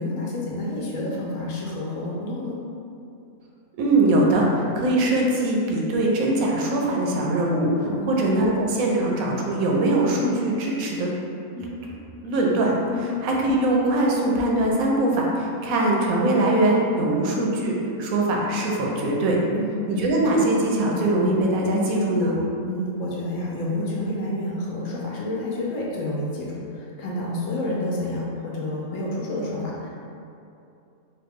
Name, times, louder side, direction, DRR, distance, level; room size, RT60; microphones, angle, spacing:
voice 1, 0.0-2.6 7.8-8.1 12.9-13.1 19.5-19.7 22.6-29.9, left 1 dB, 70° left, -4 dB, 0.9 m, -29 dB
voice 2, 3.8-11.1 11.6-11.9 12.2-12.7 13.2-17.7 18.0-19.4 19.9-22.4, right 1 dB, 75° right, -2 dB, 1.0 m, -22 dB
3.1 x 2.2 x 3.4 m, 2.6 s
omnidirectional pair, 1.5 m